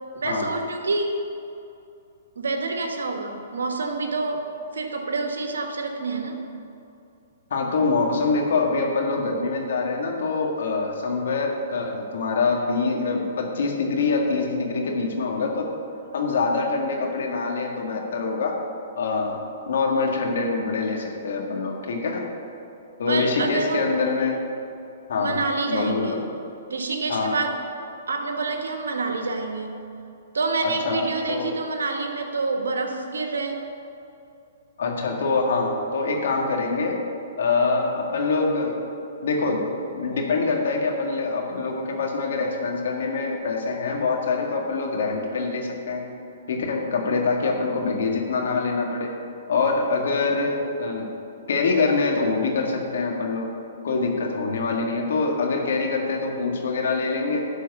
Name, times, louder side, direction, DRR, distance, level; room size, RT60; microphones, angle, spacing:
voice 1, 0.1-1.2 2.3-4.5 4.7-6.4 23.1-23.9 25.2-26.2 26.7-27.6 28.1-29.9 30.3-33.6, right 3 dB, 80° right, 4 dB, 1.3 m, -27 dB
voice 2, 7.5-15.7 16.1-18.6 19.0-19.4 19.7-22.3 23.0-24.4 25.1-25.4 25.7-26.2 27.1-27.4 30.6-31.5 34.8-37.0 37.4-38.8 39.2-39.6 39.9-46.1 46.5-49.2 49.5-51.1 51.5-53.5 53.8-57.4, left 4 dB, 70° left, 1 dB, 1.7 m, -25 dB
12.0 x 4.6 x 6.8 m, 2.7 s
hypercardioid pair, 125°, 0 cm